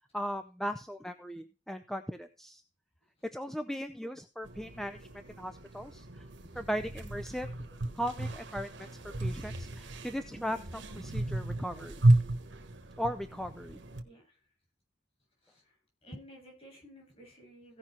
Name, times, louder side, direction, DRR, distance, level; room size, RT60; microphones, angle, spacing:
voice 1, 0.1-2.6 3.3-5.1 5.4-6.0 6.5-7.5 7.9-8.9 9.2-12.0 13.0-13.8, equal, ahead, 9 dB, 0.5 m, -37 dB
sound 1, 4.4-14.0, right 1 dB, 80° right, 1.4 m, -33 dB
voice 2, 14.0-14.4 15.4-17.8, equal, 35° left, 0 dB, 7.7 m, -53 dB
16.5 x 5.6 x 4.6 m, 0.34 s
head